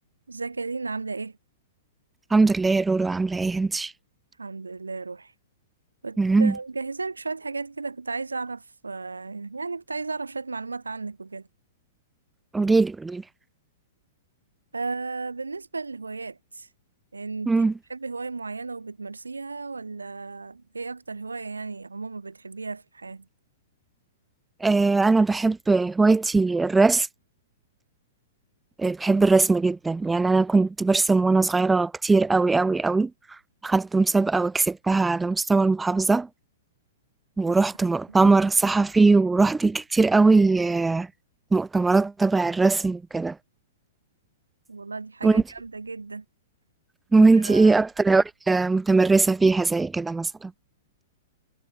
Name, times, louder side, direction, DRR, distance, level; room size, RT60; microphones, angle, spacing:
voice 1, 0.3-1.4 4.4-5.3 6.0-11.5 14.7-16.7 17.1-17.5 17.9-23.3 38.1-38.3 44.7-46.2 47.2-47.8, right 4 dB, 85° right, 2.8 m, -34 dB
voice 2, 2.3-3.9 6.2-6.5 12.5-13.2 17.5-17.7 24.6-27.1 28.8-33.1 33.6-36.3 37.4-41.1 41.5-43.4 45.2-45.4 47.1-50.5, right 3 dB, 10° right, 0.3 m, -20 dB
figure-of-eight pair, 110°, 0 cm